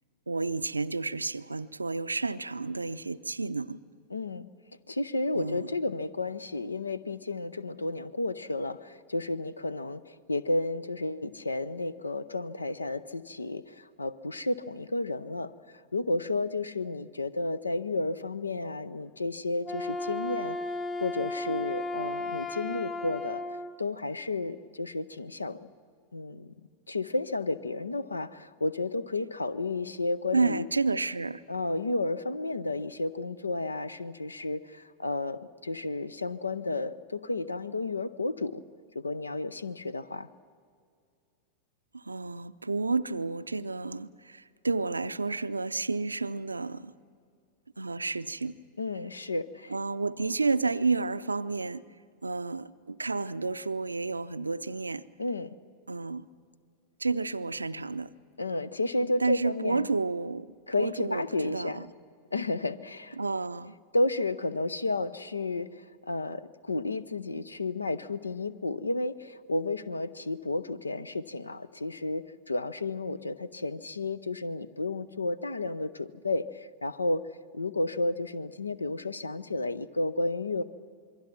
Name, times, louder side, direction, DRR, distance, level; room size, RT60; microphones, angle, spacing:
voice 1, 0.3-3.8 5.3-5.7 30.3-31.4 41.9-46.9 47.8-48.5 49.7-51.8 52.2-55.0 55.9-56.3 57.0-58.1 59.0-61.9 63.2-63.7, right 3 dB, 80° right, 0.5 m, -31 dB
voice 2, 4.1-4.5 4.9-23.4 23.8-25.7 26.1-26.5 26.9-30.6 31.5-38.6 38.9-40.3 48.8-49.7 55.2-55.6 58.4-59.9 60.7-61.8 62.3-63.2 63.9-77.2 77.5-80.6, left 2 dB, 80° left, 0.6 m, -32 dB
Wind instrument woodwind instrument, 19.6-23.7, left 2 dB, 15° left, 1.0 m, -34 dB
26.5 x 22.5 x 5.9 m
figure-of-eight pair, 90°, 0 cm